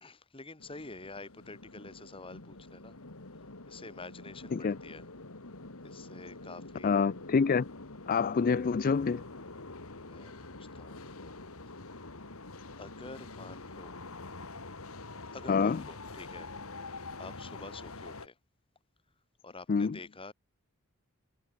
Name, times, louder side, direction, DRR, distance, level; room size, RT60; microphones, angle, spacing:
voice 1, 0.0-2.9 3.7-5.1 5.8-7.1 9.9-11.4 11.9-12.1 12.3-12.5 12.8-14.0 15.3-16.5 17.2-18.4 19.4-20.3, left 3 dB, 25° left, 1.9 m, -48 dB
sound 1, 0.6-18.3, left 3 dB, 70° left, 2.4 m, -46 dB
voice 2, 6.8-7.7 8.1-9.2 15.5-15.8 19.7-20.0, left 5 dB, 40° left, 0.4 m, -27 dB
head